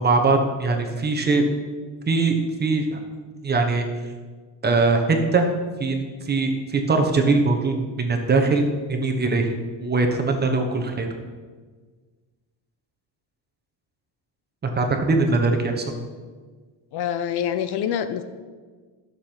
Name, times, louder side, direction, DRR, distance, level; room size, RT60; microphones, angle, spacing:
voice 1, 0.0-1.5 2.1-3.0 3.4-3.9 4.6-5.5 5.8-8.6 8.9-9.5 9.8-11.1 14.6-15.9, right 3 dB, 25° right, 4 dB, 1.1 m, -21 dB
voice 2, 16.9-18.2, left 9 dB, 60° left, 11 dB, 0.7 m, -26 dB
12.0 x 6.8 x 5.9 m, 1.5 s
cardioid pair, 165°, 43 cm